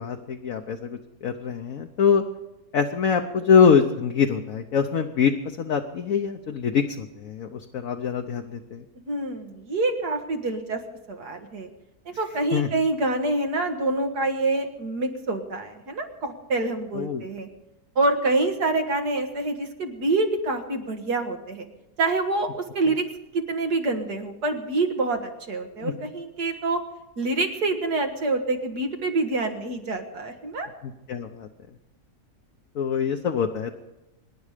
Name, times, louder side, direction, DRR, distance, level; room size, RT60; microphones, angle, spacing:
voice 1, 0.0-2.2 2.7-5.3 5.6-8.8 12.5-12.7 16.9-17.2 25.8-25.9 30.8-31.5 32.7-33.7, left 6 dB, 65° left, 3 dB, 1.3 m, -24 dB
voice 2, 9.0-10.8 11.1-11.7 12.1-17.5 18.0-21.7 22.0-23.1 23.3-26.8 27.2-30.7, right 2 dB, 90° right, 5 dB, 2.3 m, -26 dB
25.0 x 11.0 x 5.1 m, 0.96 s
omnidirectional pair, 1.7 m